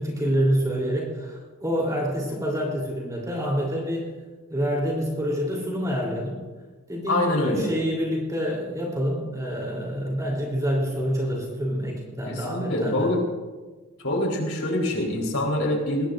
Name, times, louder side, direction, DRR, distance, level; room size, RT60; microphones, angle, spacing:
voice 1, 0.0-4.1 4.5-6.4 6.9-13.1, equal, 15° right, -3 dB, 3.5 m, -27 dB
voice 2, 7.1-7.7 12.3-13.2 14.0-16.1, left 1 dB, 80° left, 0 dB, 4.1 m, -25 dB
22.5 x 18.5 x 2.6 m, 1.3 s
head